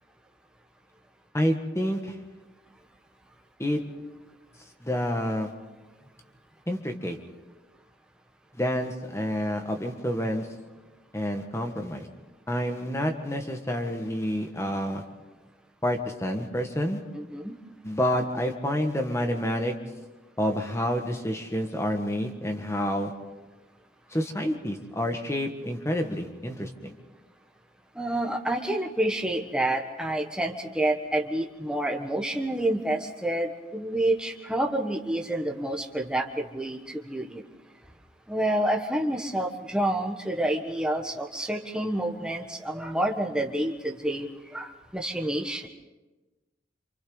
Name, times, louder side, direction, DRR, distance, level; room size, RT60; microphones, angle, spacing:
voice 1, 1.3-2.2 3.6-3.8 4.8-5.5 6.7-7.2 8.5-10.5 11.1-12.1 12.5-15.0 15.8-17.0 17.8-19.7 20.4-23.1 24.1-26.9, equal, 15° left, 4 dB, 1.7 m, -28 dB
voice 2, 17.1-17.5 27.9-37.4 38.3-45.7, right 1 dB, 5° right, 2 dB, 1.4 m, -28 dB
27.5 x 27.0 x 4.1 m, 1.2 s
head